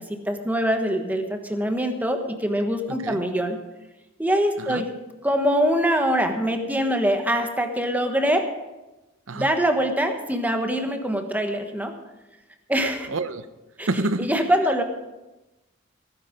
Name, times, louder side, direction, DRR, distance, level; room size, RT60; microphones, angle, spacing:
voice 1, 0.0-3.6 4.2-4.9 5.2-8.4 9.3-11.9 12.7-13.1 13.8-13.9 14.2-14.8, equal, 10° right, 5 dB, 1.3 m, -23 dB
voice 2, 2.9-3.2 4.6-4.8 9.3-9.5 13.1-13.4 13.9-14.3, right 2 dB, 75° right, 12 dB, 0.8 m, -27 dB
17.0 x 10.0 x 5.1 m, 1.1 s
head